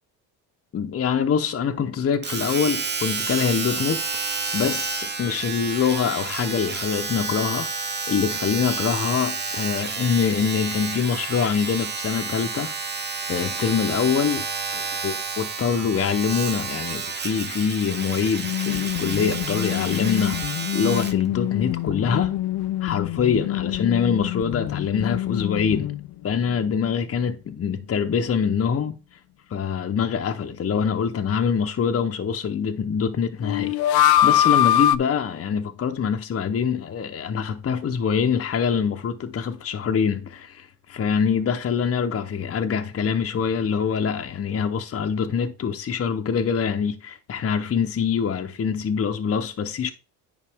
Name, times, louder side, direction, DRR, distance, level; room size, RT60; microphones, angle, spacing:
voice 1, 0.7-4.0 4.3-12.7 13.3-20.4 20.7-22.4 22.8-26.0 26.2-29.2 29.5-49.9, left 7 dB, 35° left, 0.8 m, -24 dB
Domestic sounds home sounds, 2.2-21.2 21.9-22.0, right 4 dB, 25° right, 1.1 m, -30 dB
sound 1, 18.4-26.2 26.5-26.6 33.4-35.0, left 12 dB, 65° left, 0.6 m, -24 dB
10.0 x 4.7 x 3.5 m
cardioid pair, 95°, 41 cm